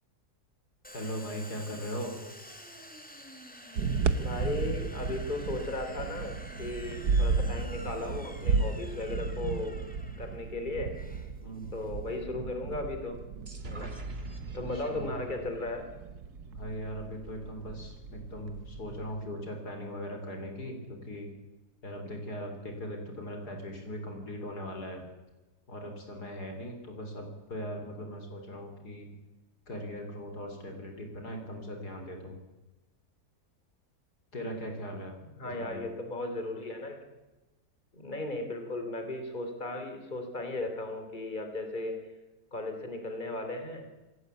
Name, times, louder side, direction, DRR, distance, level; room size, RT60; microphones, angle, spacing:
Domestic sounds home sounds, 0.8-12.2, equal, 5° left, 2.6 m, -49 dB
voice 1, 0.9-2.2 11.4-11.7 14.7-15.1 16.5-21.3 21.8-25.1 25.7-29.1 29.7-32.4 34.3-35.9, equal, 70° left, 4 dB, 4.3 m, -39 dB
sound 1, 3.8-19.2, right 4 dB, 70° right, 1.6 m, -34 dB
voice 2, 4.1-9.8 10.2-10.9 11.7-13.2 13.6-13.9 14.5-15.9 35.2-37.0 37.9-41.9 42.5-43.9, left 2 dB, 25° left, 6 dB, 3.3 m, -36 dB
sound 2, 13.5-17.1, right 1 dB, 35° right, 2.7 m, -45 dB
27.0 x 15.0 x 8.3 m, 1.1 s
omnidirectional pair, 1.8 m